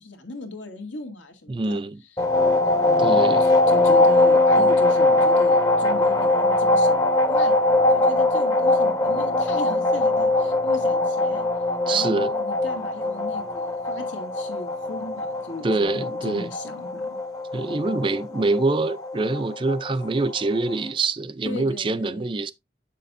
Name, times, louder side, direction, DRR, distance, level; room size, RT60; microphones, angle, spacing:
voice 1, 0.0-1.8 2.8-11.5 11.9-17.2 21.5-22.5, left 1 dB, 85° left, 2.0 m, -37 dB
voice 2, 1.5-2.0 3.0-3.4 11.9-12.3 15.6-16.5 17.5-22.5, right 3 dB, 25° right, 0.4 m, -25 dB
sound 1, 2.2-20.8, left 2 dB, 20° left, 0.7 m, -21 dB
7.9 x 6.5 x 2.6 m
head